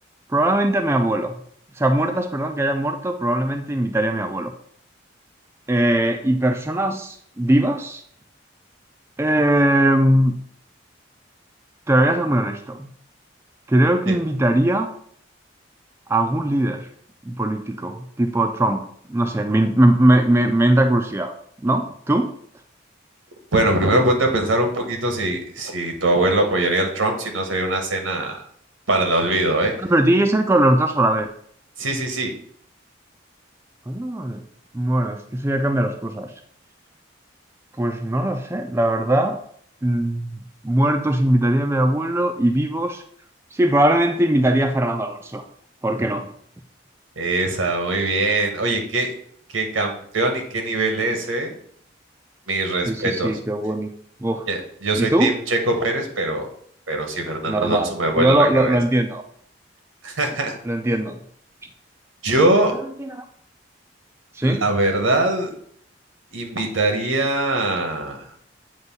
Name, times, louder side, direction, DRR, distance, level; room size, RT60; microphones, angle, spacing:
voice 1, 0.3-1.4 1.8-4.5 5.7-8.0 9.2-10.4 11.9-12.9 13.7-14.9 16.1-16.9 17.3-21.3 21.6-22.3 29.8-31.3 33.9-34.4 34.7-36.3 37.8-39.4 39.8-43.0 43.5-45.4 45.8-46.3 52.9-53.9 54.2-54.5 55.0-55.3 57.5-59.2 60.6-61.2 63.0-63.1 64.3-64.7, right 1 dB, 15° right, 5 dB, 0.4 m, -20 dB
voice 2, 23.5-28.4 28.9-29.7 31.8-32.3 47.2-49.1 49.5-51.5 52.5-53.3 54.5-56.5 56.9-58.8 60.0-60.6 62.2-62.7 64.4-65.5 66.3-68.2, right 2 dB, 90° right, 4 dB, 1.3 m, -22 dB
8.0 x 2.7 x 5.4 m, 0.63 s
head